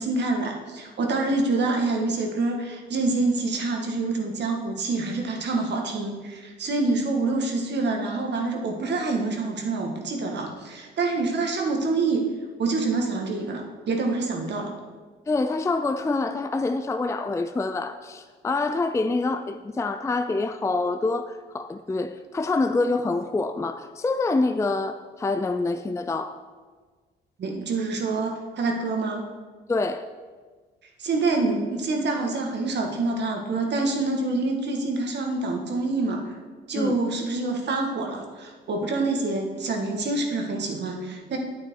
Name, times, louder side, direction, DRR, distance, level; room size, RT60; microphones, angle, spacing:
voice 1, 0.0-12.3 12.6-14.7 27.4-29.2 31.0-36.3 36.7-41.4, right 3 dB, 60° right, 2 dB, 1.8 m, -26 dB
voice 2, 15.3-26.3 29.7-30.0 36.7-37.0, left 3 dB, 15° left, 9 dB, 0.5 m, -26 dB
9.0 x 9.0 x 4.7 m, 1.4 s
cardioid pair, 90°, 20 cm